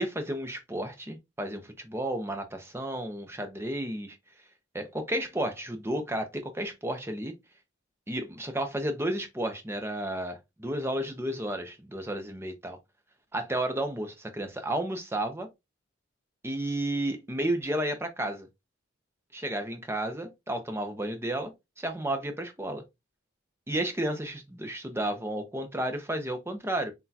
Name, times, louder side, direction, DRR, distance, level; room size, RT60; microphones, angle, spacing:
voice 1, 0.0-4.2 4.7-7.3 8.1-12.8 13.3-15.5 16.4-18.5 19.3-22.8 23.7-26.9, right 1 dB, 10° right, 0.6 m, -32 dB
5.9 x 2.3 x 2.7 m
head